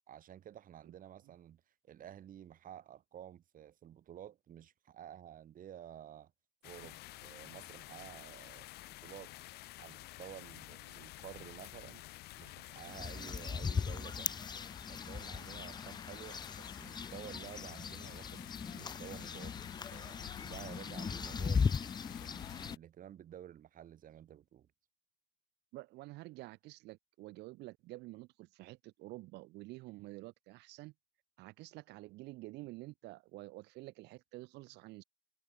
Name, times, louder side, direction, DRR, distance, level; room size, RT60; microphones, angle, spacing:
voice 1, 0.1-1.6 1.9-6.3 6.6-8.7 9.0-9.3 9.8-12.0 12.4-14.4 14.9-21.8 22.2-24.7, right 10 dB, 55° right, 2.2 m, -52 dB
sound 1, 6.6-22.8, left 18 dB, 75° left, 0.4 m, -51 dB
sound 2, 12.8-22.8, left 5 dB, 25° left, 0.7 m, -38 dB
voice 2, 25.7-30.9 31.4-35.0, right 20 dB, 90° right, 1.5 m, -49 dB
cardioid pair, 110°, 17 cm